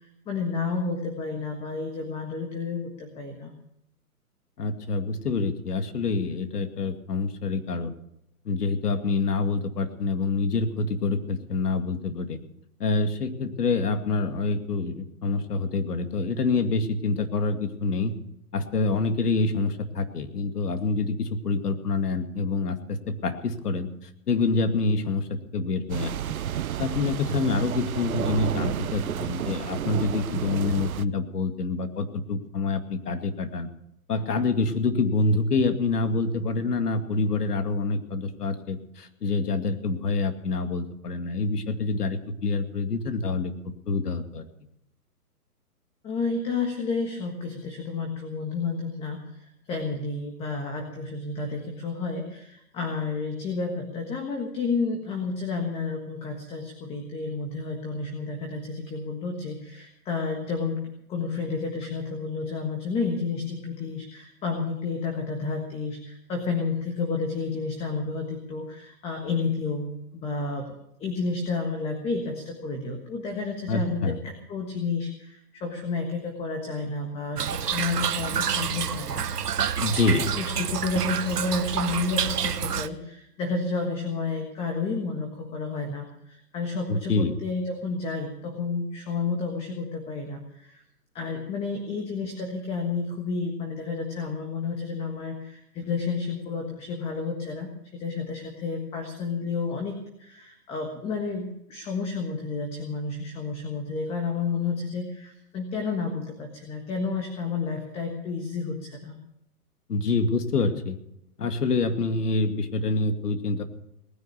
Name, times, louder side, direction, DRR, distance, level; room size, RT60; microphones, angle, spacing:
voice 1, 0.0-3.5 46.0-60.8 61.1-70.7 71.0-79.7 80.3-90.8 91.1-109.2, left 4 dB, 10° left, 3 dB, 1.5 m, -31 dB
voice 2, 4.6-7.9 8.5-12.4 12.8-18.2 18.5-23.9 24.3-26.4 26.8-33.7 34.1-43.5 43.9-44.5 73.7-74.2 79.8-80.3 86.9-87.3 109.9-111.0 111.4-113.6, left 3 dB, 75° left, 7 dB, 2.3 m, -26 dB
sound 1, 25.9-31.0, right 10 dB, 65° right, 0.8 m, -31 dB
Toilet flush / Trickle dribble, 77.4-82.9, right 8 dB, 80° right, 1.2 m, -28 dB
19.0 x 10.5 x 6.7 m, 0.78 s
hypercardioid pair, 150°, 46 cm